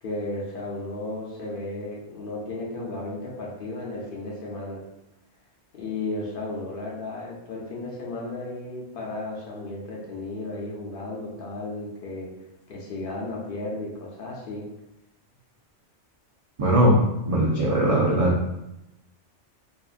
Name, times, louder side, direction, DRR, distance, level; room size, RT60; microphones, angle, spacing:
voice 1, 0.0-4.8 5.7-12.3 12.7-14.7, left 2 dB, 55° left, -4 dB, 0.7 m, -34 dB
voice 2, 16.6-17.0 17.3-18.3, right 1 dB, 60° right, -5 dB, 0.3 m, -19 dB
2.7 x 2.4 x 2.4 m, 0.91 s
omnidirectional pair, 1.2 m